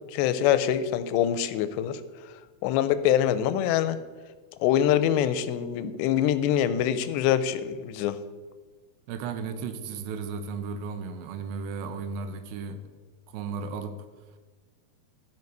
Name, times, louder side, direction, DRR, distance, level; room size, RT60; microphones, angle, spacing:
voice 1, 0.1-2.0 2.6-4.0 4.6-8.2, left 10 dB, 85° left, 13 dB, 2.8 m, -24 dB
voice 2, 9.1-12.8 13.3-14.0, right 5 dB, 85° right, 8 dB, 2.9 m, -34 dB
15.0 x 5.1 x 4.6 m, 1.4 s
omnidirectional pair, 5.0 m